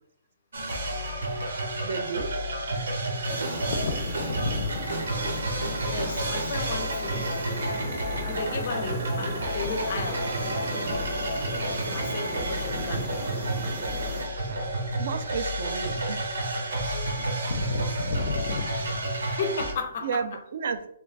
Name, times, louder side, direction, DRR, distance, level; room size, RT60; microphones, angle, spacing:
sound 1, 0.5-19.7, right 1 dB, 80° right, 0.9 m, -30 dB
voice 1, 1.8-2.4 14.5-14.7 15.0-16.3 19.2-19.3 20.0-20.9, right 5 dB, 45° right, 9 dB, 0.3 m, -32 dB
sound 2, 3.3-14.3, right 1 dB, 30° right, 0.7 m, -37 dB
voice 2, 3.6-5.0 5.8-7.6 8.2-10.6 11.8-13.1 17.5-20.4, left 3 dB, 40° left, 6 dB, 0.5 m, -33 dB
3.1 x 2.4 x 3.3 m, 0.73 s
hypercardioid pair, 175°, 0 cm